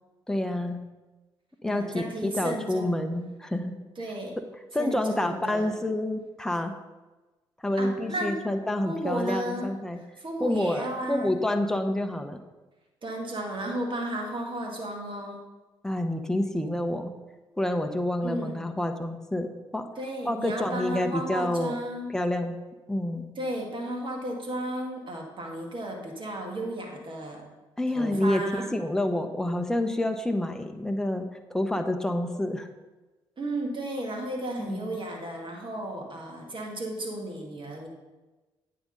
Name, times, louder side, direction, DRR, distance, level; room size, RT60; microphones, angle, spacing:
voice 1, 0.3-0.8 1.6-3.7 4.7-6.7 7.6-10.0 10.4-10.8 11.1-12.4 15.8-17.1 17.6-19.9 20.2-21.8 22.1-22.6 22.9-23.3 27.8-32.7 34.6-34.9, left 1 dB, 5° left, 5 dB, 0.9 m, -28 dB
voice 2, 1.6-3.0 4.0-4.4 4.8-5.8 7.8-8.4 8.8-11.4 13.0-15.4 18.2-18.6 20.0-22.1 23.4-27.4 27.9-28.8 33.4-37.9, right 1 dB, 45° right, 1 dB, 2.1 m, -34 dB
8.9 x 3.8 x 5.3 m, 1.2 s
hypercardioid pair, 45°, 12 cm